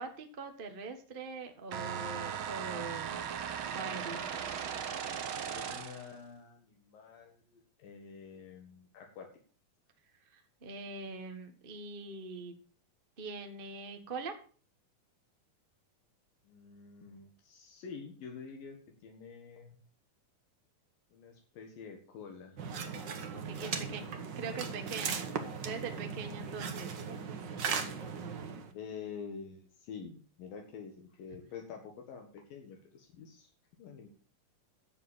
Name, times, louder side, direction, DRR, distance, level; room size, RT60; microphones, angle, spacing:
voice 1, 0.0-3.2 3.7-4.2 10.3-12.5 13.2-14.3 23.3-24.0 24.3-27.0, right 4 dB, 35° right, 5 dB, 0.8 m, -42 dB
sound 1, 1.7-6.1, right 8 dB, 85° right, 1.1 m, -38 dB
voice 2, 5.5-9.3 16.4-18.8 19.0-19.8 21.1-22.6 23.6-24.2 28.7-33.5 33.8-34.1, left 6 dB, 80° left, 2 dB, 3.5 m, -47 dB
sound 2, 22.6-28.7, right 6 dB, 60° right, 1.2 m, -38 dB
11.0 x 7.7 x 7.3 m, 0.41 s
omnidirectional pair, 4.0 m